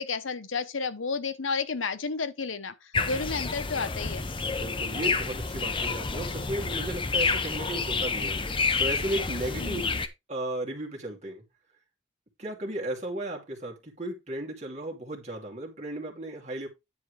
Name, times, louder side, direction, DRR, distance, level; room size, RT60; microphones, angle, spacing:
voice 1, 0.0-2.7 3.1-4.3 9.6-10.0, left 4 dB, 85° left, 1.0 m, -31 dB
sound 1, 2.9-10.1, left 4 dB, 25° left, 0.8 m, -29 dB
voice 2, 4.5-8.4 8.8-9.9 10.3-11.4 12.4-16.7, right 1 dB, 35° right, 2.6 m, -35 dB
10.0 x 4.5 x 4.9 m
head